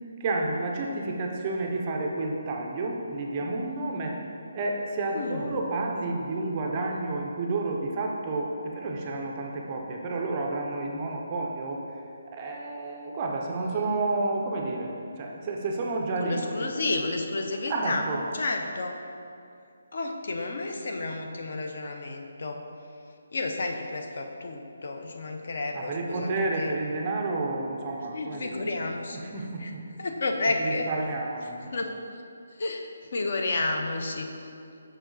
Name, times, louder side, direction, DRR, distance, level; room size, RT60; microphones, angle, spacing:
voice 1, 0.2-4.2 4.5-11.8 12.3-16.7 17.7-18.2 25.7-28.7 29.1-29.8 30.6-31.6, right 2 dB, 15° right, 0 dB, 0.4 m, -30 dB
voice 2, 5.1-5.6 13.6-14.0 16.2-18.1 18.3-19.0 19.9-22.7 23.3-26.7 28.1-29.2 29.6-29.7 30.0-30.9 31.6-32.2 32.5-34.5, left 2 dB, 40° left, 4 dB, 0.5 m, -31 dB
6.1 x 5.0 x 3.8 m, 2.5 s
hypercardioid pair, 180°, 0 cm